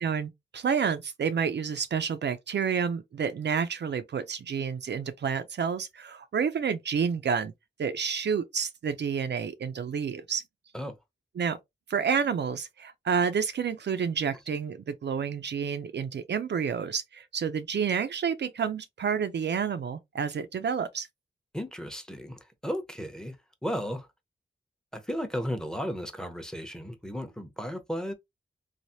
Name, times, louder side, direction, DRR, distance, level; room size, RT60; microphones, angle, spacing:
voice 1, 0.0-7.5 7.8-10.4 11.4-11.6 11.9-21.1, right 6 dB, 70° right, 0.4 m, -29 dB
voice 2, 21.5-23.4 23.6-24.1 24.9-28.1, equal, 5° left, 0.7 m, -34 dB
3.2 x 2.0 x 2.6 m
cardioid pair, 60°, 19 cm